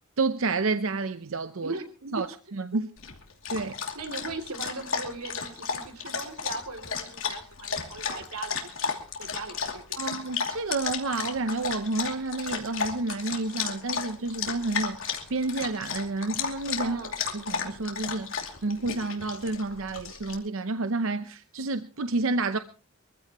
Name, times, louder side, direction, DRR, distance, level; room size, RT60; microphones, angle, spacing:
voice 1, 0.2-1.7 2.1-2.3 2.6-2.9 3.5-3.7 10.0-17.0 17.3-22.6, right 3 dB, 65° right, 0.7 m, -30 dB
voice 2, 1.6-2.2 2.7-2.8 3.9-10.1 16.8-17.2, right 3 dB, 85° right, 2.9 m, -39 dB
Dog, 3.0-20.3, left 6 dB, 65° left, 2.6 m, -34 dB
24.0 x 15.0 x 3.0 m
head